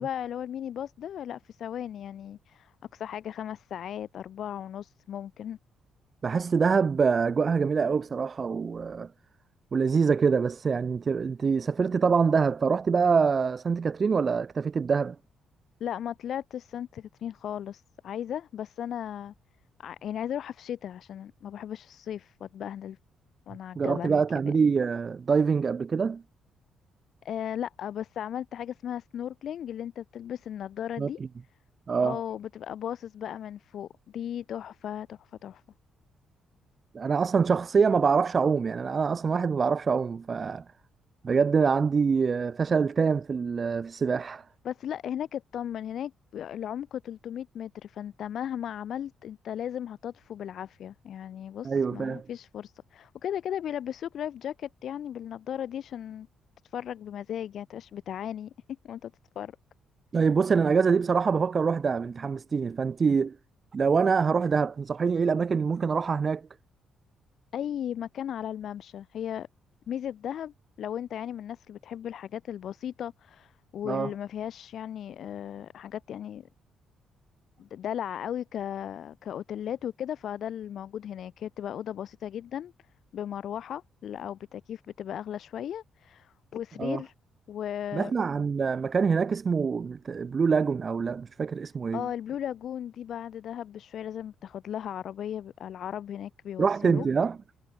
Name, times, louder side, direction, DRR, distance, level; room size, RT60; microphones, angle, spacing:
voice 1, 0.0-5.6 15.8-19.3 19.8-23.0 23.5-24.2 24.6-24.7 27.2-31.2 32.0-33.9 34.1-35.6 44.6-56.3 56.6-58.5 58.8-59.5 67.5-69.5 69.9-76.5 77.6-82.7 83.1-87.1 87.5-88.1 91.9-97.1, left 10 dB, 65° left, 2.8 m, -36 dB
voice 2, 6.2-9.1 9.7-15.2 23.8-26.2 31.0-31.1 31.9-32.2 36.9-40.6 41.2-44.4 51.6-52.3 60.1-63.4 63.7-66.5 73.9-74.1 86.8-87.0 87.9-92.0 96.6-97.4, right 5 dB, 40° right, 1.1 m, -25 dB
cardioid pair, 90°, 0 cm